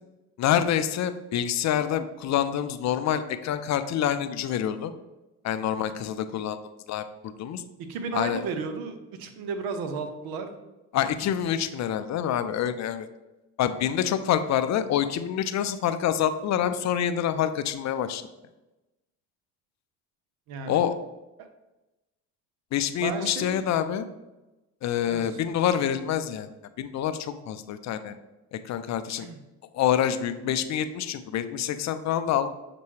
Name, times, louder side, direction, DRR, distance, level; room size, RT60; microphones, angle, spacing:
voice 1, 0.4-4.9 5.4-6.6 6.9-7.6 8.1-8.4 10.9-13.1 13.6-18.2 20.7-20.9 22.7-24.1 24.8-26.5 26.8-28.2 28.5-29.3 29.7-32.5, left 10 dB, 45° left, 10 dB, 0.4 m, -26 dB
voice 2, 7.8-10.5 20.5-20.8 21.4-21.5 23.0-23.8 25.1-25.4 29.2-29.4, right 5 dB, 70° right, 7 dB, 0.7 m, -34 dB
6.6 x 2.2 x 3.2 m, 1.0 s
hypercardioid pair, 55°, 38 cm